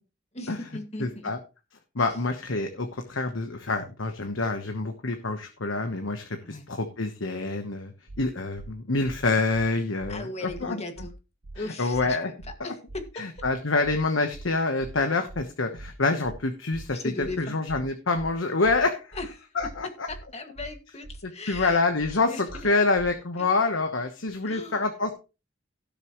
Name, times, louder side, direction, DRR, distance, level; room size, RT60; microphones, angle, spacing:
voice 1, 0.3-1.3 6.4-6.7 10.1-11.1 11.5-13.3 16.9-17.6 19.1-21.8 22.3-22.7 23.4-23.5 24.4-24.8, left 2 dB, 35° left, 6 dB, 2.0 m, -38 dB
voice 2, 1.0-1.4 1.9-7.9 8.2-10.3 10.6-10.8 11.8-12.3 12.6-12.7 13.2-19.2 19.5-19.9 21.2-25.1, left 3 dB, 80° left, 6 dB, 1.2 m, -27 dB
sound 1, 8.1-8.2 8.6-8.7 9.0-9.2 9.5-9.7 10.0-10.2 10.5-10.6 11.0-11.1 11.4-11.6 11.9-12.1 12.4-12.6 12.9-13.0 13.4-13.5 13.8-14.0 14.3-14.5 14.8-15.0 15.3-15.4 15.8-15.9 16.2-16.4 16.7-16.9 17.2-17.4 17.7-17.8 18.2-18.3 18.6-18.8 19.1-19.3 19.6-19.8 20.1-20.2 20.6-20.7 21.0-21.2 21.5-21.7 22.0-22.2 22.5-22.6 23.0-23.1, right 2 dB, 85° right, 1.0 m, -42 dB
17.0 x 6.8 x 3.1 m, 0.30 s
head